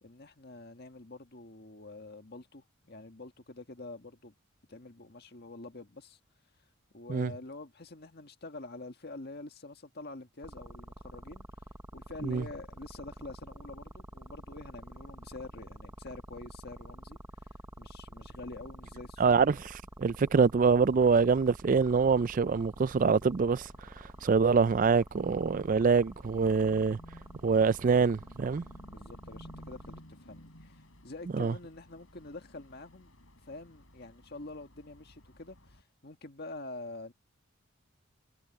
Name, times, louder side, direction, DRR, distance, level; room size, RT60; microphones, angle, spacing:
voice 1, 0.0-4.3 4.7-6.2 6.9-19.4 28.9-33.1 33.4-37.1, left 2 dB, 50° left, 1.8 m, -46 dB
sound 1, 10.4-30.0, right 1 dB, 15° right, 0.9 m, -48 dB
voice 2, 19.2-19.6 20.0-23.7 24.2-27.0 27.4-28.6 31.3-31.5, right 5 dB, 40° right, 0.3 m, -25 dB
sound 2, 23.5-35.8, equal, 75° left, 6.7 m, -56 dB
head